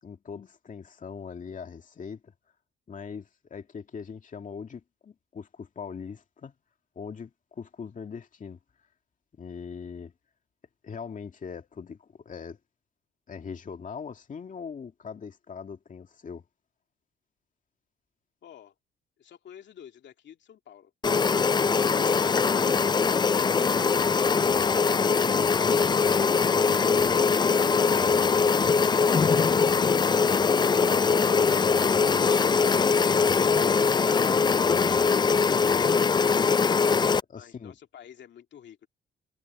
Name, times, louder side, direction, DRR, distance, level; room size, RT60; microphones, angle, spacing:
voice 1, 0.0-2.3 2.9-6.5 7.0-8.6 9.3-10.1 10.8-12.6 13.3-16.4 24.5-24.8 25.3-27.3 27.9-28.5 29.5-34.1 34.5-35.2 35.4-35.9 36.8-37.7, left 6 dB, 40° left, 2.3 m, -41 dB
voice 2, 18.4-18.7 19.2-20.9 37.4-38.9, left 9 dB, 65° left, 2.5 m, -49 dB
sound 1, 21.0-37.2, left 5 dB, 20° left, 0.4 m, -22 dB
cardioid pair, 90°, 20 cm